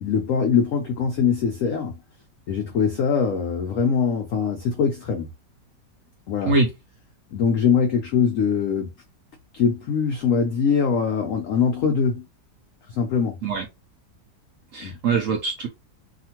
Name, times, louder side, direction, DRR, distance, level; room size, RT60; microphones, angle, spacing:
voice 1, 0.0-2.0 2.5-5.3 6.3-6.5 7.3-8.9 9.5-12.2 12.9-13.4 14.8-15.0, left 6 dB, 85° left, 0.7 m, -22 dB
voice 2, 14.7-15.7, right 4 dB, 65° right, 0.8 m, -23 dB
2.8 x 2.4 x 2.8 m
omnidirectional pair, 1.9 m